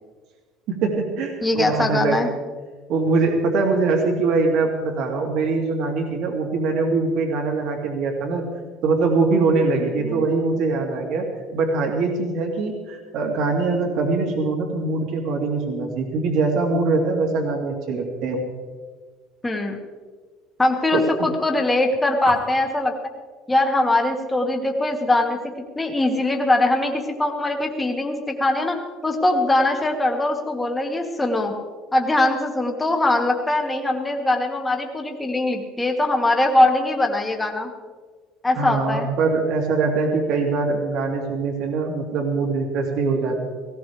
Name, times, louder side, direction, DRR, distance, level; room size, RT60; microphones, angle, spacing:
voice 1, 0.7-2.3 2.9-8.4 8.8-11.2 11.5-18.4 20.9-21.0 38.6-43.5, right 3 dB, 60° right, 0 dB, 2.7 m, -22 dB
voice 2, 1.4-2.3 10.0-10.2 19.4-19.8 20.6-22.9 23.5-25.4 25.8-28.8 29.0-31.5 31.9-37.7 38.4-39.1, left 2 dB, 10° left, 2 dB, 1.9 m, -21 dB
19.0 x 16.5 x 3.5 m, 1.5 s
cardioid pair, 140°, 0 cm